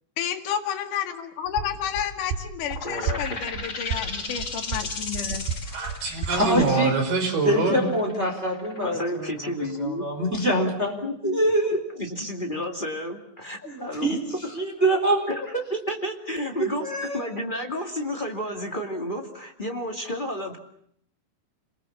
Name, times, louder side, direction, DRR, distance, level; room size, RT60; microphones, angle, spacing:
voice 1, 0.2-5.5, left 9 dB, 55° left, 4 dB, 3.1 m, -31 dB
sound 1, 1.5-6.7, right 6 dB, 80° right, 7.1 m, -34 dB
sound 2, 2.6-10.0, left 3 dB, 70° left, 0.7 m, -36 dB
voice 2, 2.8-3.2 8.8-10.0 11.0-11.4 11.9-14.2 15.3-16.9 17.1-20.6, equal, 30° left, 1 dB, 0.9 m, -31 dB
voice 3, 5.7-7.9, right 3 dB, 55° right, 4 dB, 6.4 m, -25 dB
voice 4, 6.3-6.9 7.4-11.0 11.2-11.8 13.6-14.2 14.5-15.3 16.6-17.3, right 1 dB, 15° right, 2 dB, 4.3 m, -25 dB
28.5 x 21.5 x 7.2 m, 0.69 s
omnidirectional pair, 5.3 m